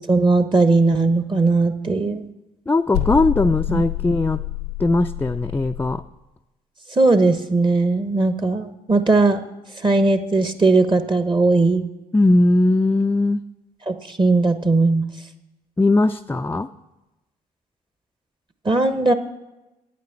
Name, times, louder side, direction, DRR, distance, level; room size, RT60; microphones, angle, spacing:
voice 1, 0.0-2.3 3.7-3.8 6.9-9.4 9.8-11.8 13.9-15.0 18.6-19.1, right 3 dB, 25° right, 10 dB, 1.1 m, -18 dB
voice 2, 2.7-4.4 4.8-6.0 12.1-13.4 15.8-16.7, left 2 dB, 10° left, 7 dB, 0.4 m, -19 dB
sound 1, 2.9-6.0, left 16 dB, 85° left, 0.8 m, -27 dB
9.5 x 8.9 x 7.3 m, 1.0 s
hypercardioid pair, 45°, 19 cm